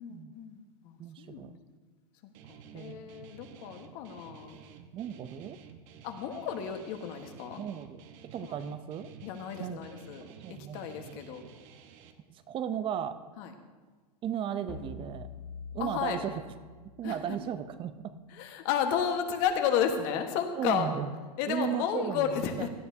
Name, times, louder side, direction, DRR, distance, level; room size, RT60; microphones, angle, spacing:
voice 1, 0.0-1.5 2.5-4.6 6.0-7.6 9.2-11.4 13.4-13.5 15.8-16.2 17.0-17.2 18.3-20.9 21.4-22.7, left 8 dB, 50° left, 5 dB, 1.4 m, -32 dB
voice 2, 1.0-1.5 2.7-3.1 4.9-5.6 7.6-8.0 8.3-9.1 9.6-9.8 10.4-11.2 12.3-13.2 14.2-15.3 15.7-16.4 17.0-18.1 20.6-21.1 21.5-22.7, right 9 dB, 25° right, 12 dB, 0.6 m, -35 dB
Guitar, 2.3-12.1, right 7 dB, 50° right, 1.1 m, -52 dB
sound 1, 14.7-17.3, left 3 dB, 15° left, 1.7 m, -45 dB
17.0 x 12.0 x 2.8 m, 1.4 s
hypercardioid pair, 125°, 20 cm